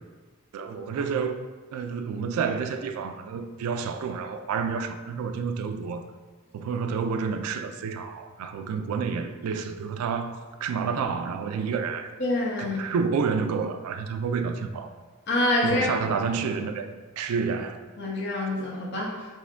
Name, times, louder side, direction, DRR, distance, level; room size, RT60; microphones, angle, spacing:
voice 1, 0.5-1.4 1.7-6.0 6.5-12.2 12.6-14.9 15.6-17.8, right 5 dB, 85° right, 0.3 m, -29 dB
voice 2, 12.2-12.8 15.3-15.9 18.0-19.3, left 1 dB, 50° left, 0.9 m, -26 dB
4.7 x 2.1 x 3.4 m
head